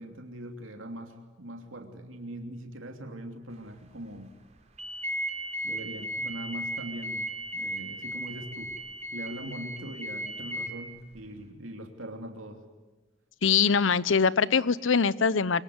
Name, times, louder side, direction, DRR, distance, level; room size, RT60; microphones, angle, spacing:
voice 1, 0.0-4.4 5.6-8.8 9.1-12.6, right 1 dB, 80° right, 4 dB, 3.0 m, -41 dB
sound 1, 4.8-10.7, right 1 dB, 35° right, 3.1 m, -35 dB
voice 2, 13.4-15.6, left 6 dB, 70° left, 18 dB, 0.8 m, -23 dB
24.5 x 24.0 x 9.6 m, 1.2 s
head